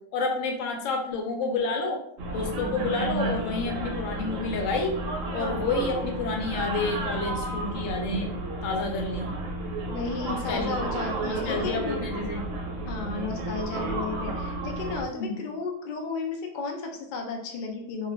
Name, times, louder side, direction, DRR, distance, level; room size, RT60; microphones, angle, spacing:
voice 1, 0.1-2.0 2.3-4.9 5.3-8.3 8.6-9.3 10.2-10.7 11.2-12.5 13.0-13.3 15.2-15.4, left 3 dB, 70° left, 2 dB, 0.9 m, -29 dB
sound 1, 2.2-15.0, right 2 dB, 75° right, 0.9 m, -32 dB
voice 2, 9.9-12.0 12.9-18.1, left 4 dB, 90° left, 1 dB, 0.4 m, -33 dB
2.4 x 2.3 x 3.0 m, 0.72 s
omnidirectional pair, 1.4 m